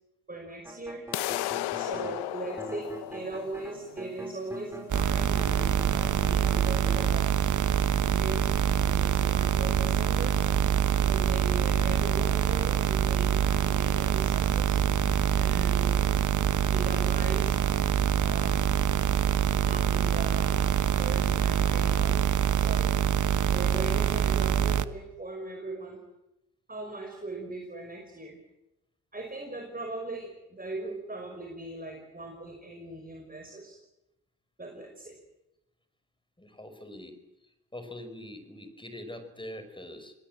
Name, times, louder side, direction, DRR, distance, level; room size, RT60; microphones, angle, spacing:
voice 1, 0.3-1.1 1.7-5.5 5.9-7.4 7.9-8.5 8.7-10.4 11.0-14.8 15.4-16.2 16.7-17.6 18.2-18.8 19.6-22.3 22.5-23.0 23.5-26.0 26.7-28.4 29.1-33.8 34.6-35.2, right 2 dB, 20° right, 2 dB, 5.7 m, -39 dB
sound 1, 0.6-2.2 2.6-7.1, right 1 dB, 5° right, 6.2 m, -43 dB
sound 2, 1.1-7.1, left 16 dB, 80° left, 1.0 m, -36 dB
sound 3, 4.9-24.8, right 9 dB, 50° right, 1.2 m, -25 dB
voice 2, 36.4-37.2 37.7-40.1, left 1 dB, 10° left, 9 dB, 5.8 m, -43 dB
27.5 x 19.5 x 7.7 m, 0.95 s
hypercardioid pair, 45°, 39 cm